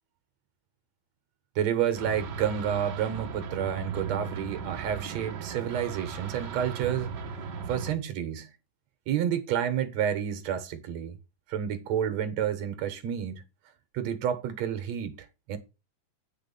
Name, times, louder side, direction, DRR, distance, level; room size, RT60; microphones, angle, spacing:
voice 1, 1.6-7.1 7.7-8.5 9.1-11.2 11.5-13.4 13.9-15.2 15.5-15.6, right 9 dB, 65° right, 2.2 m, -29 dB
sound 1, 1.9-7.9, right 6 dB, 90° right, 0.9 m, -37 dB
9.2 x 4.9 x 6.9 m
omnidirectional pair, 3.8 m